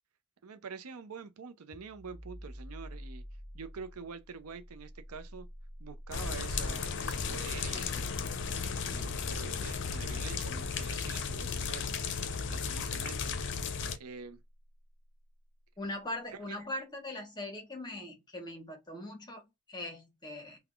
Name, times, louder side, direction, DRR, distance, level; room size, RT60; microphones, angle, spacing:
voice 1, 0.4-3.2 3.5-5.5 5.8-8.2 8.6-11.9 12.5-13.4 13.9-14.4 16.3-16.6, right 5 dB, 80° right, 0.6 m, -46 dB
sound 1, 1.7-13.1, equal, ahead, 1.4 m, -49 dB
sound 2, 6.1-14.0, left 5 dB, 55° left, 0.5 m, -35 dB
voice 2, 15.8-20.6, left 1 dB, 20° left, 1.0 m, -41 dB
3.5 x 2.2 x 2.3 m
head